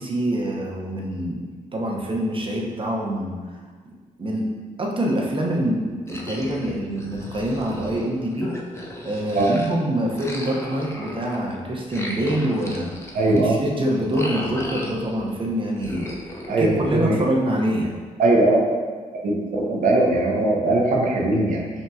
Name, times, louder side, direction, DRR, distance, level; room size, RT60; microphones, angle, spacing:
voice 1, 0.0-3.3 4.2-4.5 4.8-8.5 9.0-12.9 13.3-16.1 16.5-18.0, right 1 dB, 35° right, -1 dB, 0.8 m, -25 dB
sound 1, 6.1-9.8 10.1-15.3 15.8-17.5, left 1 dB, 20° left, 0.7 m, -36 dB
voice 2, 13.1-13.6 16.5-17.2 18.2-18.6 19.2-21.7, right 2 dB, 70° right, -2 dB, 0.8 m, -20 dB
5.6 x 2.8 x 2.3 m, 1.5 s
supercardioid pair, 55°, 14 cm